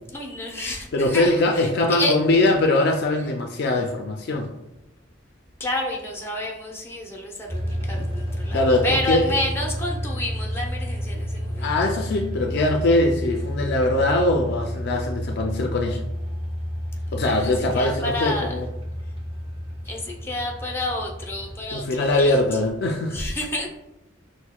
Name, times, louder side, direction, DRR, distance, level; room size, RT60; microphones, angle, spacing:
voice 1, 0.1-2.1 5.6-11.7 17.1-18.6 19.8-22.4 23.1-23.7, left 1 dB, 15° left, 0 dB, 0.6 m, -29 dB
voice 2, 0.9-4.5 8.0-8.1 8.5-9.3 11.6-16.0 17.1-18.7 21.7-23.2, left 2 dB, 55° left, 3 dB, 0.4 m, -22 dB
sound 1, 7.5-21.6, equal, 30° right, 0.7 m, -30 dB
6.0 x 2.1 x 2.2 m, 0.90 s
head